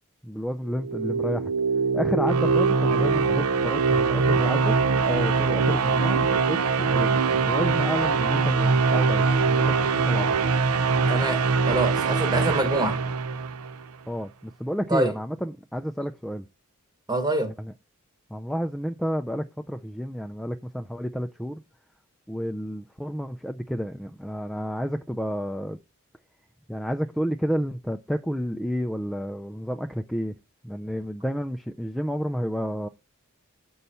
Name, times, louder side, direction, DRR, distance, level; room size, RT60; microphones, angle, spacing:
voice 1, 0.2-1.5 1.9-4.7 5.0-10.3 14.1-16.4 17.4-17.7 18.3-21.6 22.3-25.8 26.7-30.3 30.6-32.9, equal, ahead, 0.3 m, -30 dB
sound 1, 0.7-13.8, right 4 dB, 80° right, 0.6 m, -23 dB
voice 2, 11.1-13.0 14.9-15.1 17.1-17.5, right 2 dB, 20° right, 1.1 m, -25 dB
8.1 x 5.5 x 4.2 m
head